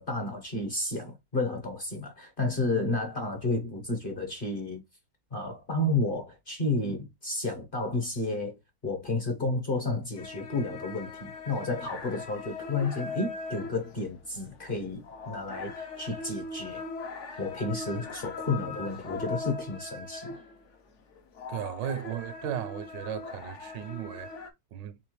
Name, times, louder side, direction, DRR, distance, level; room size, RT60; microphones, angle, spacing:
voice 1, 0.0-4.8 5.3-16.8 17.4-20.3, left 2 dB, 40° left, 0.9 m, -31 dB
sound 1, 10.2-20.8 21.1-24.5, left 3 dB, 60° left, 0.8 m, -40 dB
voice 2, 21.5-25.0, right 10 dB, 85° right, 1.3 m, -36 dB
4.2 x 3.4 x 3.1 m
omnidirectional pair, 1.9 m